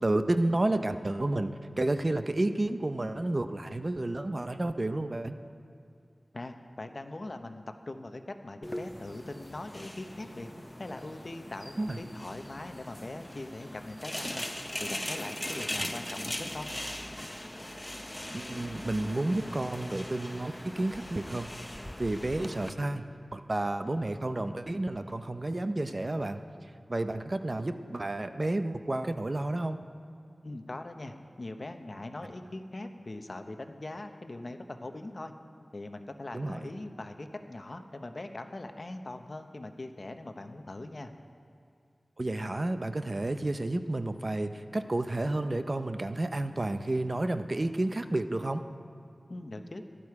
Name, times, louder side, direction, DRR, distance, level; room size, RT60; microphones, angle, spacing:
voice 1, 0.0-5.4 11.8-12.0 15.8-15.9 18.3-21.5 22.0-23.0 23.3-26.4 26.9-29.8 36.3-36.7 42.2-48.6, right 2 dB, 40° right, 9 dB, 0.6 m, -31 dB
voice 2, 6.3-10.5 10.8-14.5 14.8-16.7 30.4-35.3 35.6-41.1 49.3-49.8, left 2 dB, 50° left, 6 dB, 0.9 m, -41 dB
sound 1, 8.6-22.7, left 1 dB, 15° left, 0.7 m, -40 dB
16.5 x 12.5 x 4.8 m, 2.3 s
wide cardioid pair, 65°, 0 cm